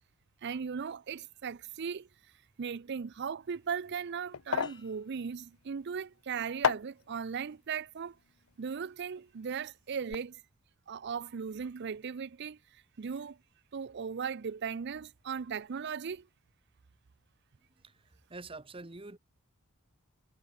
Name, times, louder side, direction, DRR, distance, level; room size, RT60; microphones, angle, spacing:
voice 1, 0.4-2.1 2.6-8.2 8.6-10.4 10.9-12.6 13.0-13.4 13.7-16.3, right 6 dB, 55° right, 0.5 m, -37 dB
sound 1, 3.4-9.6 9.9-10.1, left 7 dB, 75° left, 0.5 m, -37 dB
sound 2, 4.6-6.4 6.9-7.3, left 5 dB, 20° left, 3.4 m, -62 dB
voice 2, 17.7-19.2, right 3 dB, 25° right, 1.1 m, -47 dB
head